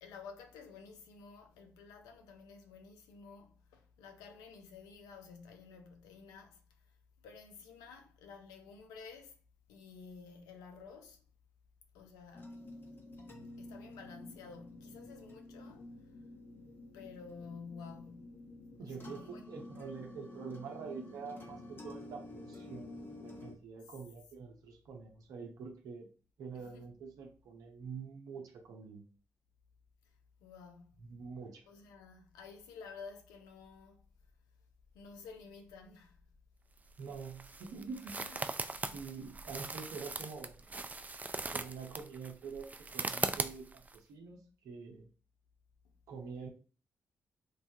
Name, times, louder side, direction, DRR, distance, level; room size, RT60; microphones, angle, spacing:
voice 1, 0.0-6.9 7.2-9.4 9.7-11.2 11.9-12.7 13.6-15.9 16.9-18.5 18.8-19.5 23.9-24.0 26.5-26.9 30.4-31.1 31.7-34.0 34.9-36.2 38.0-38.4, left 5 dB, 85° left, 0.5 m, -52 dB
sound 1, 12.3-23.6, left 2 dB, 35° left, 0.9 m, -50 dB
voice 2, 18.8-26.1 26.4-29.0 31.0-31.6 37.0-38.2 38.9-40.7 41.5-45.1 46.1-46.5, right 5 dB, 75° right, 0.6 m, -46 dB
sound 2, 36.8-44.0, right 3 dB, 25° right, 0.3 m, -40 dB
3.2 x 2.2 x 2.6 m
hypercardioid pair, 45°, 6 cm